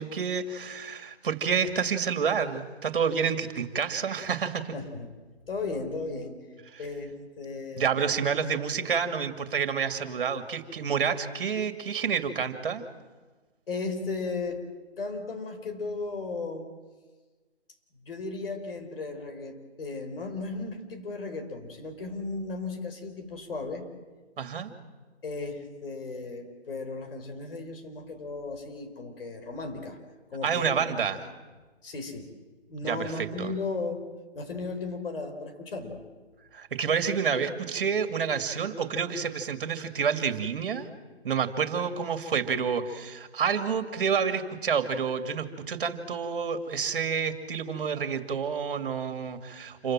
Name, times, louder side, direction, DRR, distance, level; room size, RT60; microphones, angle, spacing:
voice 1, 0.0-4.8 7.8-12.8 24.4-24.7 30.4-31.2 32.8-33.5 36.5-40.9 41.2-49.9, right 6 dB, 50° right, 9 dB, 2.7 m, -29 dB
voice 2, 4.7-5.1 5.5-6.4 6.8-7.9 13.7-14.6 15.0-16.7 18.0-23.8 25.2-30.0 30.3-31.1 31.8-32.3 32.7-34.0 34.3-36.0, left 3 dB, 55° left, 6 dB, 5.0 m, -35 dB
28.0 x 23.5 x 7.7 m, 1.3 s
figure-of-eight pair, 150°, 33 cm